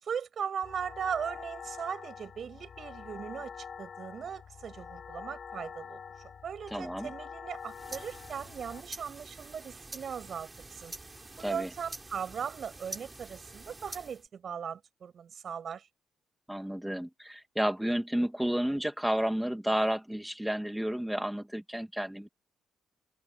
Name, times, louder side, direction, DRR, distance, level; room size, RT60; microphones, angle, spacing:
voice 1, 0.0-6.0 6.4-10.9 11.4-15.9, right 7 dB, 55° right, 7.4 m, -38 dB
sound 1, 0.6-8.8, left 6 dB, 50° left, 1.9 m, -46 dB
voice 2, 6.7-7.1 11.4-11.7 16.5-22.3, equal, 5° right, 2.3 m, -31 dB
sound 2, 7.6-14.3, right 2 dB, 20° right, 3.2 m, -47 dB
cardioid pair, 90°, 0 cm